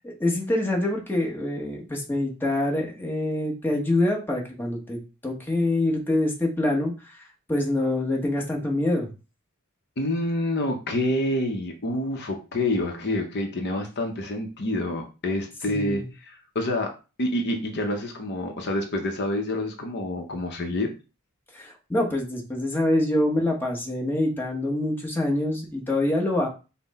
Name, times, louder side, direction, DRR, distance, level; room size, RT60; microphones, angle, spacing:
voice 1, 0.0-7.2 7.5-9.1 15.7-16.1 21.5-26.5, left 1 dB, 10° left, -1 dB, 1.1 m, -25 dB
voice 2, 10.0-16.9 17.2-20.9, left 1 dB, 50° left, 4 dB, 0.7 m, -27 dB
5.6 x 2.1 x 4.1 m, 0.31 s
head